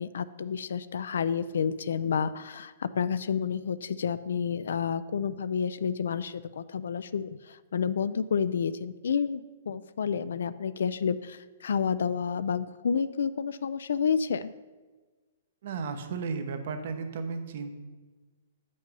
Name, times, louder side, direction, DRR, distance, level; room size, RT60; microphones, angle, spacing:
voice 1, 0.0-14.5, left 6 dB, 75° left, 14 dB, 0.3 m, -30 dB
voice 2, 15.6-17.7, right 5 dB, 60° right, 7 dB, 1.0 m, -34 dB
7.7 x 5.3 x 5.3 m, 1.3 s
hypercardioid pair, 135°, 0 cm